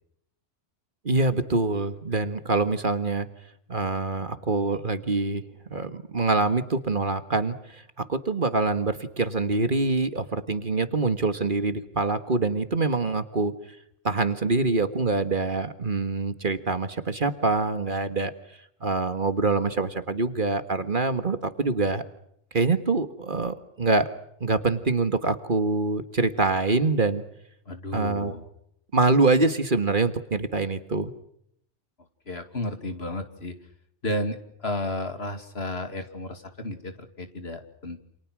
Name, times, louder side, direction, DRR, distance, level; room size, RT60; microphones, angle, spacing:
voice 1, 1.0-3.3 3.7-7.8 8.1-13.5 14.0-18.3 18.8-22.0 22.5-24.1 24.4-27.2 27.9-28.3 28.9-31.1, right 3 dB, 45° right, 10 dB, 1.8 m, -25 dB
voice 2, 27.7-28.5 32.3-33.6 34.0-38.0, left 1 dB, 55° left, 7 dB, 2.7 m, -32 dB
29.0 x 28.0 x 6.2 m, 0.75 s
omnidirectional pair, 1.2 m